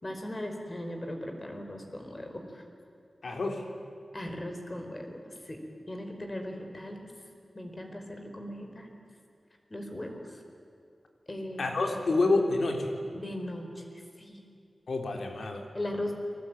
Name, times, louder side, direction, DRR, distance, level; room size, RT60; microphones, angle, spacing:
voice 1, 0.0-2.6 4.1-5.6 5.9-7.1 7.5-9.0 9.7-10.4 11.3-11.9 13.1-14.4 15.7-16.1, left 1 dB, 30° left, 4 dB, 4.7 m, -38 dB
voice 2, 3.2-3.6 11.6-12.9 14.9-15.7, left 2 dB, 75° left, 3 dB, 3.6 m, -28 dB
30.0 x 21.0 x 9.1 m, 2.5 s
wide cardioid pair, 105°, 0 cm